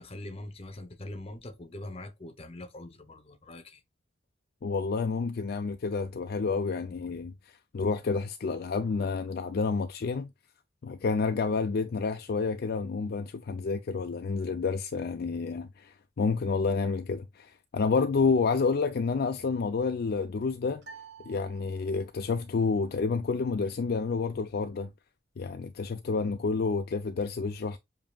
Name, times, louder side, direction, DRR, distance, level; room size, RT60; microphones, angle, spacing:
voice 1, 0.0-3.8, left 1 dB, 30° left, 0.8 m, -43 dB
voice 2, 4.6-10.3 10.8-20.8 21.3-24.9 25.4-27.8, left 4 dB, 50° left, 0.4 m, -29 dB
sound 1, 20.8-22.3, right 6 dB, 60° right, 1.3 m, -50 dB
7.3 x 2.8 x 2.3 m
head